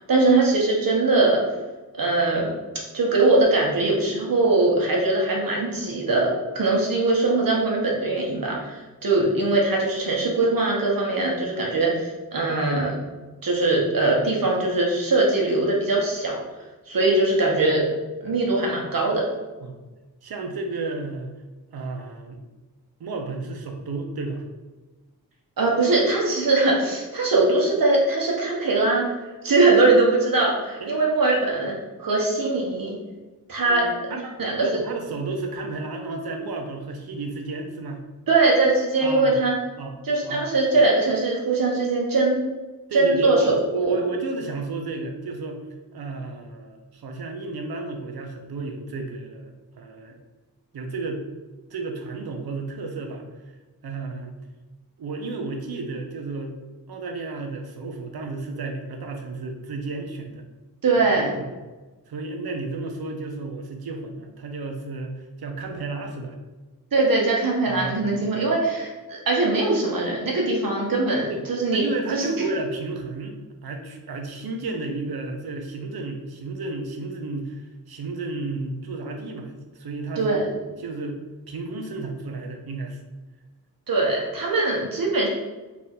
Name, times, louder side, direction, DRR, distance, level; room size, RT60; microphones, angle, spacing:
voice 1, 0.0-1.4 2.0-2.5 2.9-12.9 13.4-16.4 16.9-17.8 18.2-19.2 25.6-29.0 29.4-33.0 33.5-33.8 34.4-34.8 38.3-39.5 40.0-42.4 42.9-43.9 60.8-61.3 66.9-71.9 72.1-72.4 80.2-80.5 83.9-85.3, right 2 dB, 65° right, -2 dB, 1.1 m, -21 dB
voice 2, 20.2-21.3 21.7-22.4 23.0-24.4 30.8-30.9 32.1-32.2 33.6-38.0 39.0-39.4 39.8-39.9 40.2-40.5 42.9-45.6 45.9-50.2 50.7-51.2 51.7-53.3 53.8-54.3 55.0-56.6 56.9-60.4 61.2-61.6 62.1-66.4 67.7-68.4 71.3-71.4 71.7-80.4 80.8-81.2 81.5-83.0, right 3 dB, 80° right, 4 dB, 0.7 m, -32 dB
3.4 x 2.5 x 4.3 m, 1.2 s
wide cardioid pair, 85°, 37 cm